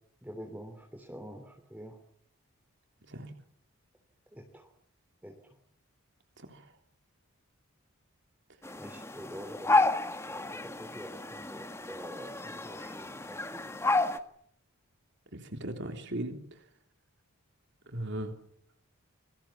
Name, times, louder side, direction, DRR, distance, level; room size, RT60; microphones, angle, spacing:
voice 1, 0.2-2.0 4.3-4.7 5.2-5.6 8.7-9.9 10.2-13.7, equal, 5° right, 3 dB, 3.4 m, -46 dB
voice 2, 3.0-3.3 6.4-6.8 15.3-16.7 17.9-18.4, right 1 dB, 50° right, 5 dB, 3.4 m, -38 dB
sound 1, 8.6-14.2, left 2 dB, 10° left, 1.7 m, -31 dB
28.5 x 24.0 x 7.3 m, 0.67 s
head